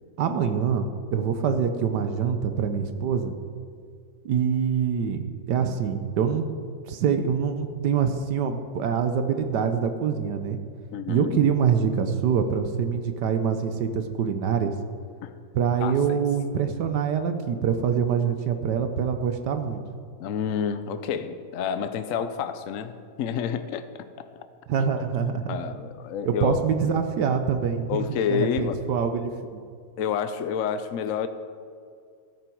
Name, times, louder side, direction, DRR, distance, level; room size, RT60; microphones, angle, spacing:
voice 1, 0.2-0.9 1.1-3.3 4.2-6.5 6.9-10.6 11.1-14.7 15.5-19.8 24.7-25.6 26.3-29.6, right 7 dB, 65° right, 8 dB, 1.3 m, -25 dB
voice 2, 10.9-11.4 15.2-15.3 15.8-16.2 20.2-24.3 24.8-24.9 25.5-26.7 27.9-28.8 30.0-31.3, left 7 dB, 75° left, 10 dB, 0.7 m, -29 dB
13.5 x 11.0 x 4.6 m, 2.2 s
omnidirectional pair, 2.1 m